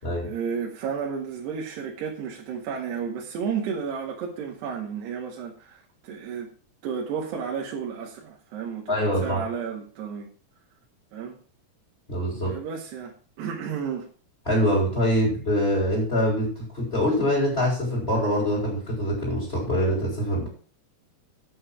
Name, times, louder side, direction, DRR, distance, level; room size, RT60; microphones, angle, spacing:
voice 1, 0.2-6.5 6.8-10.3 11.1-11.4 12.4-14.1, right 6 dB, 75° right, 3.9 m, -32 dB
voice 2, 8.9-9.4 12.1-12.6 14.5-20.5, equal, 15° left, 5.8 m, -24 dB
9.4 x 8.7 x 6.2 m
omnidirectional pair, 4.9 m